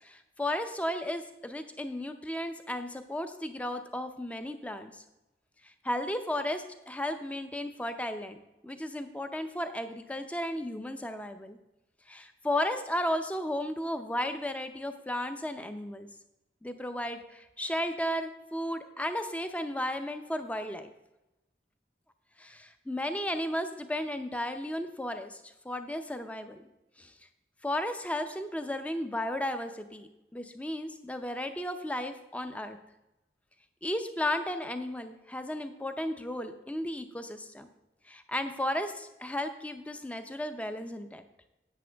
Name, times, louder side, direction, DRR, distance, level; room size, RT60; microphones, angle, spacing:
voice 1, 0.0-5.0 5.6-8.4 8.6-11.6 12.1-16.1 16.6-20.9 22.4-26.6 27.0-27.1 27.6-32.8 33.8-37.7 38.1-41.2, left 1 dB, 10° left, 8 dB, 0.6 m, -34 dB
10.0 x 8.6 x 3.4 m, 0.97 s
head